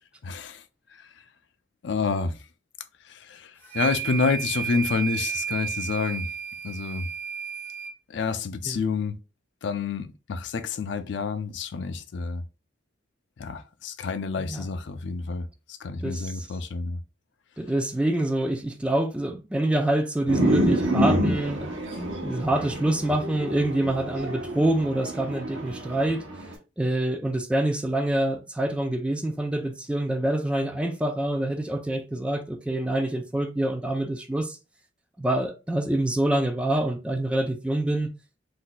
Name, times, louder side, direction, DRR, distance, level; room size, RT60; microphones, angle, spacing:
voice 1, 0.2-0.6 1.0-1.1 1.8-2.3 3.1-6.3 6.6-7.1 8.1-9.2 9.6-12.4 13.4-17.0, left 4 dB, 65° left, 0.4 m, -29 dB
sound 1, 3.6-7.9, right 8 dB, 10° left, 0.8 m, -32 dB
voice 2, 14.4-14.7 16.0-16.5 17.6-21.7 22.2-26.3 26.8-34.6 35.2-38.1, right 1 dB, 5° right, 0.3 m, -26 dB
sound 2, 20.3-26.5, right 1 dB, 85° right, 0.8 m, -28 dB
2.6 x 2.3 x 3.8 m
head